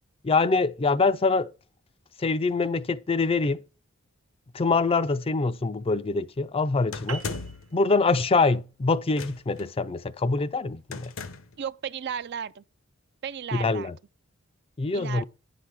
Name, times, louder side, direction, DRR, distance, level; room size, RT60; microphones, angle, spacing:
voice 1, 0.2-1.5 2.2-3.6 4.5-7.2 7.7-11.1 13.5-14.0 14.8-15.2, left 3 dB, 25° left, 0.4 m, -24 dB
sound 1, 6.9-7.7 9.1-9.6 10.9-11.6, left 4 dB, 70° left, 0.9 m, -37 dB
sound 2, 7.1-11.8, right 5 dB, 75° right, 0.9 m, -45 dB
voice 2, 11.6-12.6 13.2-13.9 14.9-15.2, right 8 dB, 55° right, 0.4 m, -34 dB
10.0 x 5.9 x 4.8 m
head